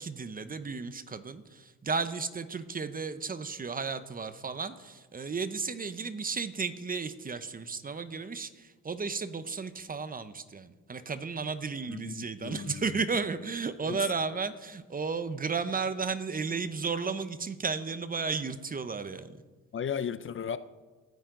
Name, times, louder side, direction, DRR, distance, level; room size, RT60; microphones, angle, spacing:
voice 1, 0.0-19.3, right 5 dB, 30° right, 0.9 m, -34 dB
voice 2, 11.9-13.0 13.8-14.1 19.7-20.6, left 8 dB, 40° left, 0.6 m, -36 dB
18.5 x 10.5 x 3.9 m
cardioid pair, 90°, 30 cm